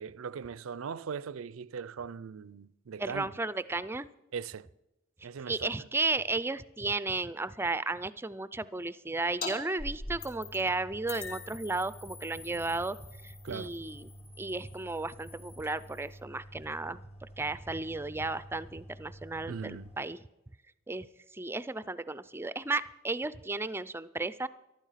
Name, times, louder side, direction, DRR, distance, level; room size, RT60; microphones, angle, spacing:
voice 1, 0.0-3.3 4.3-4.7 5.2-5.7 13.4-13.7 19.5-19.9, right 6 dB, 80° right, 0.5 m, -39 dB
voice 2, 3.0-4.1 5.4-13.0 13.2-14.1 14.4-17.0 17.4-20.2 20.9-21.1 21.3-24.5, right 3 dB, 10° right, 0.4 m, -34 dB
sound 1, 9.4-9.5 9.8-10.7 11.1-16.2, left 3 dB, 50° left, 3.8 m, -44 dB
sound 2, 10.0-20.0, right 1 dB, 30° left, 1.4 m, -51 dB
14.0 x 12.0 x 5.7 m
head